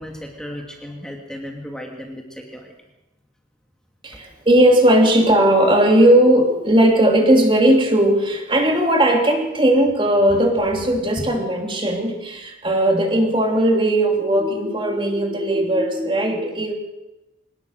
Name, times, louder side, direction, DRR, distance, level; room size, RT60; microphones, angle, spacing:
voice 1, 0.0-2.7, equal, 5° left, 1 dB, 2.5 m, -35 dB
voice 2, 4.0-16.7, right 1 dB, 25° right, 2 dB, 3.0 m, -17 dB
25.0 x 19.0 x 6.6 m, 0.99 s
head